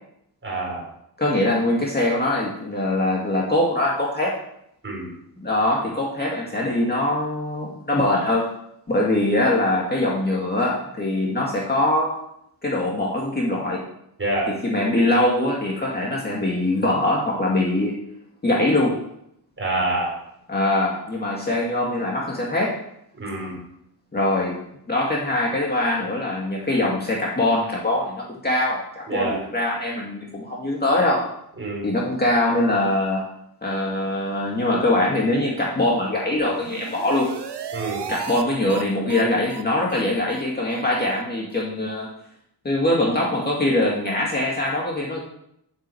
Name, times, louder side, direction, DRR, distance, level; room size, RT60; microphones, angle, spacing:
voice 1, 0.4-0.9 4.8-5.1 14.2-14.5 19.6-20.1 23.1-23.6 29.1-29.4 31.6-31.9 37.7-38.1, right 2 dB, 30° right, -3 dB, 5.0 m, -26 dB
voice 2, 1.2-4.4 5.4-8.5 8.9-12.2 12.6-13.9 14.5-17.9 18.4-19.0 20.5-22.8 24.1-24.6 24.9-31.2 31.8-33.3 33.6-37.3 38.1-42.1 42.6-45.2, left 1 dB, 25° left, -3 dB, 2.1 m, -22 dB
sound 1, 36.4-38.4 38.7-38.8 39.1-39.2 39.5-39.6 39.9-40.0 40.3-40.4 40.7-40.8 41.1-41.2 41.5-41.6, right 7 dB, 70° right, 1.1 m, -34 dB
8.8 x 7.8 x 7.8 m, 0.76 s
wide cardioid pair, 155°, 42 cm